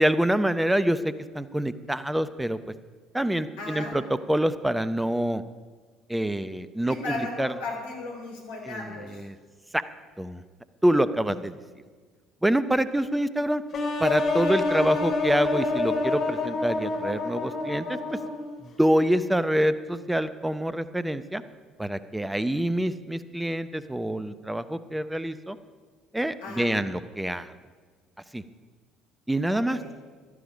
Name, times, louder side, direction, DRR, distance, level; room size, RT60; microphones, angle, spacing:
voice 1, 0.0-2.7 3.1-4.0 4.3-5.4 6.1-7.5 8.7-9.4 9.7-9.8 10.2-10.4 10.8-11.6 12.4-13.6 14.0-18.0 18.6-21.4 21.8-25.6 26.1-27.5 28.3-28.4 29.3-29.8, right 1 dB, 5° right, 13 dB, 0.8 m, -26 dB
voice 2, 3.6-4.0 6.9-9.2 11.2-11.5 26.4-26.7 29.5-29.9, left 3 dB, 70° left, 0 dB, 3.8 m, -36 dB
sound 1, 13.7-18.6, left 3 dB, 45° left, 2.8 m, -27 dB
16.0 x 12.5 x 5.1 m, 1.5 s
figure-of-eight pair, 55°, 0 cm